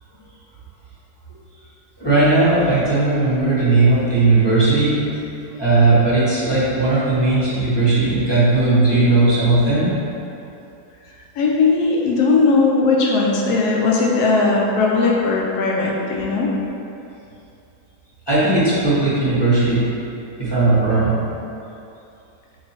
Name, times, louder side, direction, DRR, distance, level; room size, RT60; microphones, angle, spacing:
voice 1, 2.0-5.2 5.6-9.9 18.3-19.8 20.4-21.1, right 2 dB, 15° left, -12 dB, 1.0 m, -17 dB
voice 2, 8.9-9.3 9.6-9.7 11.4-16.5, left 3 dB, 75° left, -2 dB, 1.1 m, -18 dB
3.7 x 2.7 x 4.3 m, 2.7 s
omnidirectional pair, 1.8 m